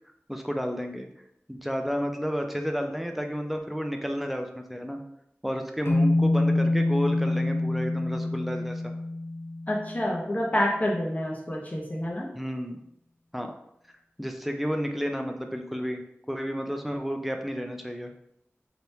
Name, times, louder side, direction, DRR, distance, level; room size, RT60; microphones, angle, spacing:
voice 1, 0.3-1.1 1.5-5.0 5.4-8.8 12.3-12.8 13.3-13.5 14.2-16.0 16.3-18.1, equal, 5° right, 4 dB, 0.4 m, -31 dB
sound 1, 5.9-10.2, left 2 dB, 60° left, 0.6 m, -26 dB
voice 2, 9.7-12.3, left 1 dB, 35° left, -2 dB, 0.9 m, -28 dB
3.3 x 3.0 x 2.7 m, 0.76 s
wide cardioid pair, 55°, 5 cm